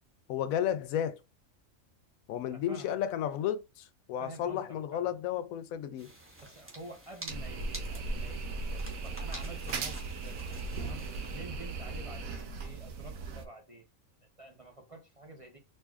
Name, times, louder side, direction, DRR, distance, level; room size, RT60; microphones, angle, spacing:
voice 1, 0.3-1.2 2.3-6.1, left 10 dB, 85° left, 1.0 m, -33 dB
voice 2, 2.5-3.3 4.2-5.0 6.4-10.4 10.8-13.9 14.2-15.6, right 2 dB, 35° right, 0.6 m, -49 dB
sound 1, 6.0-11.4, right 1 dB, 10° right, 1.0 m, -48 dB
sound 2, 7.3-13.5, right 3 dB, 85° right, 1.1 m, -37 dB
4.3 x 2.9 x 2.3 m
omnidirectional pair, 1.4 m